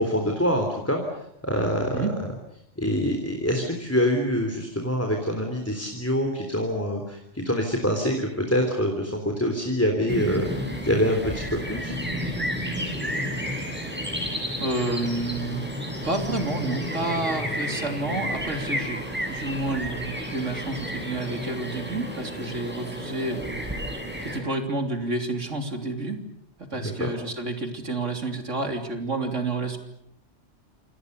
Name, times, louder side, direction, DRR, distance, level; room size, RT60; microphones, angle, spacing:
voice 1, 0.0-2.1 2.8-11.9 26.7-27.1, equal, 10° left, 2 dB, 3.6 m, -25 dB
sound 1, 10.1-24.4, equal, 10° right, 7.1 m, -31 dB
voice 2, 14.6-15.6 16.0-19.0 19.3-23.6 24.2-26.2 26.6-29.8, right 2 dB, 80° right, 5 dB, 3.7 m, -29 dB
28.0 x 28.0 x 6.8 m, 0.73 s
omnidirectional pair, 1.2 m